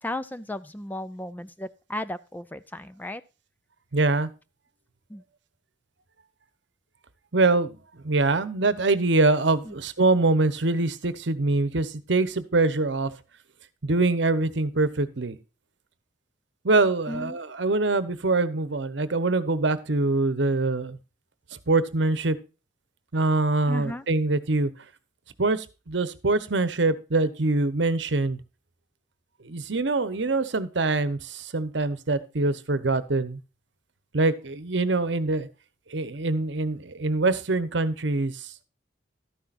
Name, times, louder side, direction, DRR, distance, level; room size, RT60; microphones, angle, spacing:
voice 1, 0.0-3.2 5.1-5.2 9.7-9.8 17.1-17.4 23.7-24.0, left 1 dB, 10° left, 13 dB, 0.4 m, -35 dB
voice 2, 3.9-4.3 7.3-7.7 8.0-13.1 13.8-15.4 16.6-21.0 21.7-22.4 23.1-24.7 25.4-28.4 29.4-33.4 34.1-35.5 35.9-38.5, right 3 dB, 70° right, 14 dB, 0.9 m, -24 dB
12.5 x 10.0 x 2.5 m, 0.31 s
head